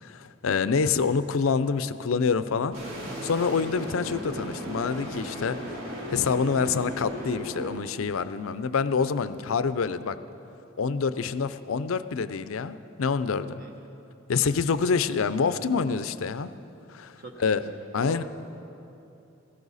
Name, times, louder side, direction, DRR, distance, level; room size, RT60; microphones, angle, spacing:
voice 1, 0.0-2.8 3.0-5.8 6.1-10.2 10.8-13.6 14.3-16.5 16.9-17.1 17.4-17.6 17.9-18.2, left 5 dB, 85° left, 13 dB, 0.5 m, -26 dB
sound 1, 2.7-7.8, equal, 80° right, 3.2 m, -36 dB
voice 2, 17.2-18.2, right 2 dB, 45° right, 2 dB, 0.8 m, -43 dB
17.0 x 15.5 x 4.1 m, 2.8 s
head